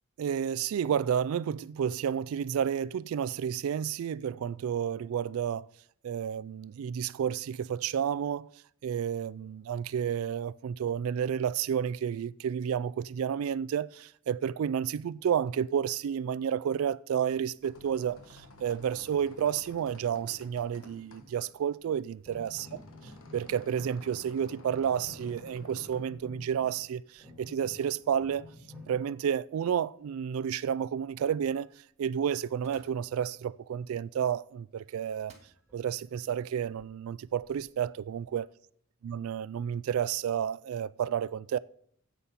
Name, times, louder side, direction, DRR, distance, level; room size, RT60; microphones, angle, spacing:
voice 1, 0.2-5.7 6.0-8.5 8.8-22.8 23.3-28.5 28.9-31.7 32.0-35.3 35.7-38.5 39.0-41.6, right 8 dB, 75° right, 0.3 m, -31 dB
sound 1, 17.3-26.0, left 2 dB, 75° left, 1.2 m, -53 dB
sound 2, 19.8-20.2 22.3-22.6 24.6-25.0 26.7-26.9 27.8-28.0 29.0-29.1 32.4-33.1 34.2-34.6 35.2-35.6, right 2 dB, 30° right, 2.0 m, -60 dB
sound 3, 21.2-21.5 22.3-24.4 24.7-29.0 35.2-35.3 35.7-35.8 36.2-36.3 36.7-36.9 37.3-38.3, left 2 dB, ahead, 3.9 m, -51 dB
9.6 x 8.4 x 5.8 m
head